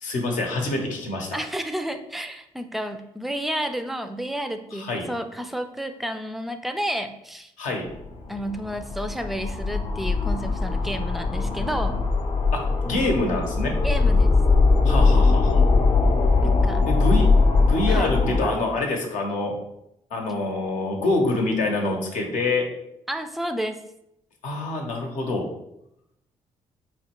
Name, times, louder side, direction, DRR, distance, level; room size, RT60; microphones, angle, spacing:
voice 1, 0.0-1.4 4.7-5.0 7.6-7.9 12.5-13.7 14.8-15.6 16.9-17.3 17.6-19.6 20.1-22.6 24.4-25.5, left 2 dB, 70° left, 1 dB, 0.8 m, -26 dB
voice 2, 1.3-7.5 8.3-12.0 13.8-14.4 16.4-16.9 17.9-18.1 23.1-23.8, equal, ahead, 8 dB, 0.3 m, -31 dB
sound 1, 7.9-18.4, left 3 dB, 40° left, 0.6 m, -20 dB
3.9 x 2.2 x 2.9 m, 0.81 s
supercardioid pair, 60°, 13 cm